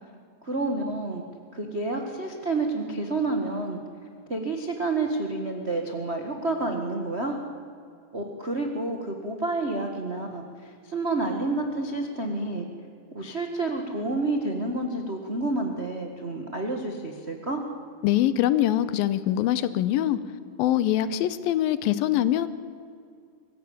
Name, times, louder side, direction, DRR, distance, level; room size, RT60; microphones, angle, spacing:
voice 1, 0.4-1.2 1.5-3.8 4.3-7.4 8.1-12.7 13.1-17.6, right 2 dB, 70° right, 3 dB, 0.6 m, -29 dB
voice 2, 18.0-20.2 20.6-22.5, left 12 dB, 80° left, 14 dB, 2.6 m, -23 dB
24.0 x 15.0 x 8.7 m, 2.4 s
omnidirectional pair, 4.2 m